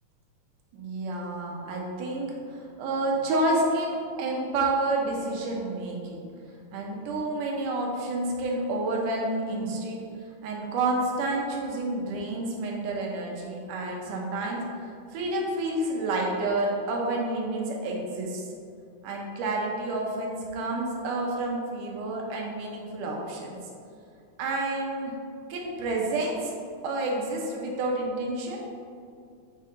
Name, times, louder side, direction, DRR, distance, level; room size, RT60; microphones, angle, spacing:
voice 1, 0.7-6.2 6.7-10.0 10.4-18.5 19.0-23.6 24.4-25.1 25.5-26.6 26.8-28.6, right 2 dB, 75° right, -1 dB, 2.3 m, -29 dB
7.5 x 4.0 x 3.8 m, 2.3 s
omnidirectional pair, 3.8 m